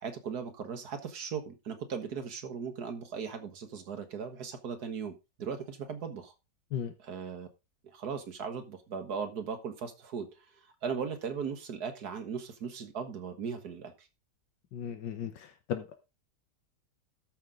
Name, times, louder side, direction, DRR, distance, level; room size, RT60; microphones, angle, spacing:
voice 1, 0.0-6.3 7.0-7.5 7.9-10.3 10.8-14.1, right 6 dB, 60° right, 1.8 m, -38 dB
voice 2, 14.7-15.9, left 9 dB, 80° left, 1.6 m, -36 dB
13.0 x 5.9 x 3.7 m
omnidirectional pair, 1.9 m